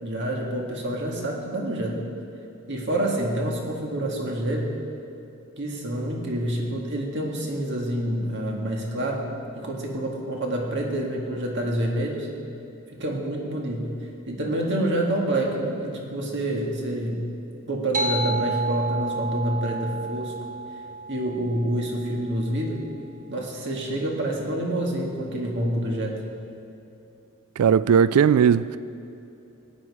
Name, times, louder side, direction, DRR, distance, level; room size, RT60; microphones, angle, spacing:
voice 1, 0.0-2.0 2.7-4.7 5.6-9.3 9.6-12.3 13.0-13.9 14.3-17.2 17.7-20.4 21.1-22.8 23.3-26.2, right 1 dB, 55° right, 0 dB, 2.0 m, -27 dB
sound 1, 17.9-22.9, right 3 dB, 35° right, 0.9 m, -31 dB
voice 2, 27.6-28.8, right 7 dB, 80° right, 16 dB, 0.3 m, -18 dB
16.5 x 9.7 x 4.9 m, 2.9 s
head